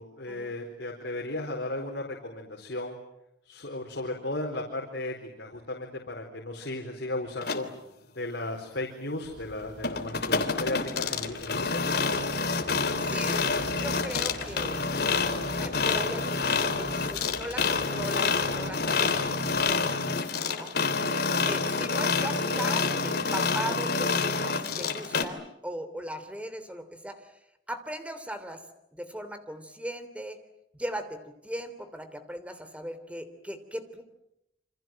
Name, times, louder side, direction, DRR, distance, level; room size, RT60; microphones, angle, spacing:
voice 1, 0.0-3.0 3.4-7.7 8.2-11.8, left 2 dB, 90° left, 1 dB, 4.3 m, -35 dB
sound 1, 7.4-7.6 9.8-25.2, left 4 dB, 65° left, 3.1 m, -28 dB
sound 2, 9.2-19.8, equal, 75° right, 7.1 m, -46 dB
voice 2, 13.1-13.5 13.8-14.8 15.6-19.4 20.5-20.8 21.5-27.4 27.7-28.6 28.9-30.4 30.7-34.0, equal, 10° right, 10 dB, 3.2 m, -38 dB
28.0 x 26.5 x 7.7 m, 0.84 s
head